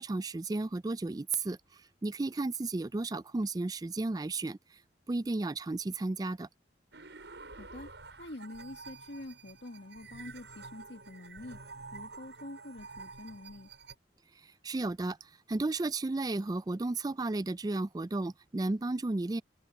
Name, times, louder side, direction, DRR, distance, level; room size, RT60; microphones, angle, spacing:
voice 1, 0.0-4.8 5.1-6.5 14.4-19.4, right 2 dB, 20° right, 0.4 m, -33 dB
sound 1, 6.9-13.9, right 4 dB, 80° right, 6.6 m, -49 dB
voice 2, 7.5-7.9 8.2-11.6 11.9-13.7, left 2 dB, 75° left, 1.7 m, -46 dB
open air
head